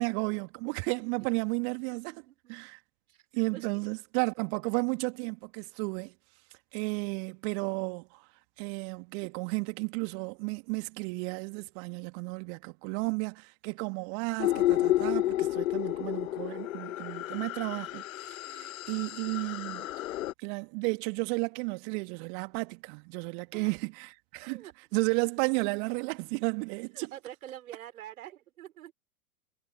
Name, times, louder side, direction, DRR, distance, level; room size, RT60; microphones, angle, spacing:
voice 1, 0.0-2.8 3.3-6.1 6.7-8.2 8.6-19.9 20.4-24.6 24.9-27.1, right 35 dB, 40° right, 2.3 m, -33 dB
voice 2, 1.9-2.7 3.1-3.2 3.5-3.7 18.4-18.7 23.5-23.8 24.4-25.0 26.9-28.9, right 12 dB, 60° right, 5.8 m, -47 dB
sound 1, 14.4-20.3, left 14 dB, 55° left, 0.7 m, -31 dB
figure-of-eight pair, 105°, 48 cm